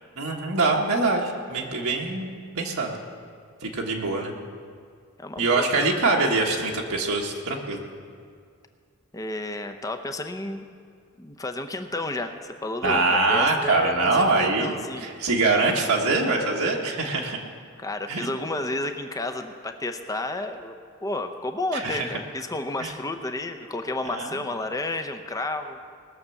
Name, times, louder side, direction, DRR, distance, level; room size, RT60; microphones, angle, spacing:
voice 1, 0.2-2.3 2.5-2.9 3.6-4.3 5.4-7.8 12.8-14.7 15.0-17.4 18.1-18.3 21.7-22.0 22.8-22.9 24.1-24.3, right 3 dB, 75° right, -1 dB, 1.4 m, -23 dB
voice 2, 5.2-5.7 7.3-7.4 9.1-10.7 11.2-15.1 17.8-20.7 21.0-25.8, left 2 dB, 15° left, 6 dB, 0.7 m, -31 dB
19.5 x 6.7 x 7.0 m, 2.2 s
head